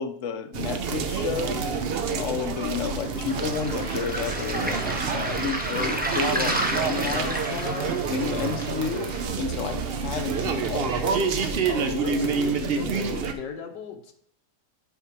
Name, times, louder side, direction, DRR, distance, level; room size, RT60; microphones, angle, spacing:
voice 1, 0.0-1.8 2.1-11.5, left 6 dB, 60° left, 9 dB, 0.8 m, -31 dB
sound 1, 0.5-13.3, right 5 dB, 70° right, 0.5 m, -28 dB
sound 2, 1.3-13.2, right 3 dB, 35° right, 0.7 m, -44 dB
Waves surf, 3.3-9.3, right 1 dB, 10° right, 0.4 m, -31 dB
voice 2, 11.7-14.1, left 6 dB, 90° left, 4 dB, 1.6 m, -35 dB
7.9 x 4.6 x 4.6 m, 0.68 s
omnidirectional pair, 1.8 m